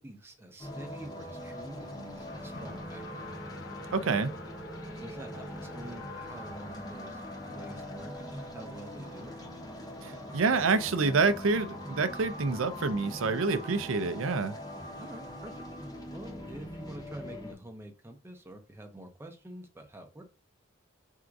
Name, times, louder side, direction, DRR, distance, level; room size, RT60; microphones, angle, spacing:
voice 1, 0.0-3.2 5.0-9.4 15.0-15.5 16.1-20.2, right 1 dB, 10° right, 0.8 m, -47 dB
sound 1, 0.6-17.5, equal, 20° left, 0.9 m, -42 dB
Race car auto racing, 1.6-12.9, left 4 dB, 60° left, 0.7 m, -51 dB
voice 2, 3.9-4.3 10.0-14.6, right 4 dB, 70° right, 0.5 m, -27 dB
3.6 x 2.6 x 4.6 m
head